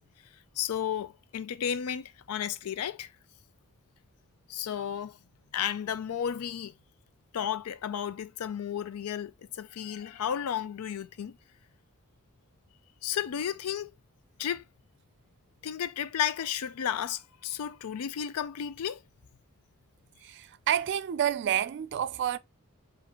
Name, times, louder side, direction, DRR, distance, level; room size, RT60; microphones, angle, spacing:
voice 1, 0.6-3.1 4.5-5.2 5.5-6.7 7.3-11.4 13.0-13.9 14.4-14.6 15.6-19.0, left 9 dB, 75° left, 0.4 m, -33 dB
voice 2, 20.2-22.4, right 10 dB, 50° right, 0.3 m, -29 dB
5.0 x 2.5 x 2.9 m
head